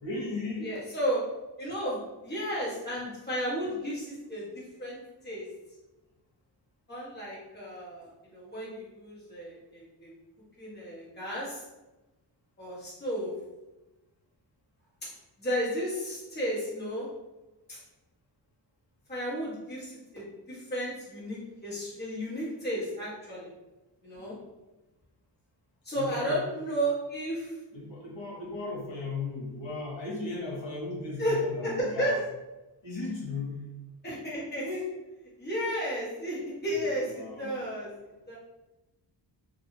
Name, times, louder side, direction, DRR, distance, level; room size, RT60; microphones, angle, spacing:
voice 1, 0.0-0.7 24.2-24.4 25.9-26.4 27.7-32.1 32.8-33.5 37.0-37.6, left 3 dB, 90° left, -3 dB, 0.9 m, -36 dB
voice 2, 0.6-1.2 1.6-5.0 5.2-5.4 6.9-10.1 10.6-11.6 12.6-13.3 15.4-17.1 17.7-17.8 19.1-23.5 24.0-24.3 25.8-27.5 31.2-32.2 34.0-34.8 35.4-37.9 38.3-38.4, equal, 25° left, -8 dB, 1.2 m, -33 dB
2.6 x 2.3 x 3.0 m, 1.0 s
wide cardioid pair, 135°, 44 cm